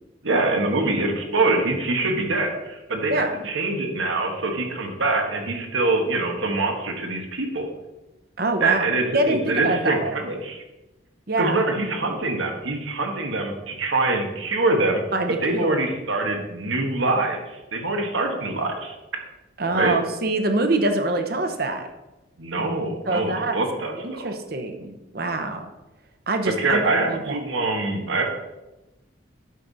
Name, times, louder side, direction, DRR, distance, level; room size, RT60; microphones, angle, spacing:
voice 1, 0.2-7.7 8.6-10.6 11.4-15.0 15.4-19.0 19.7-20.0 22.4-24.3 26.6-28.2, right 2 dB, 90° right, 3 dB, 1.5 m, -24 dB
voice 2, 8.4-8.8 9.1-10.1 11.3-11.6 12.1-12.2 15.1-15.8 19.6-21.9 23.1-23.6 24.0-25.7 26.3-26.8 27.1-27.4, right 2 dB, 50° right, 6 dB, 0.9 m, -25 dB
9.2 x 6.5 x 4.1 m, 1.0 s
head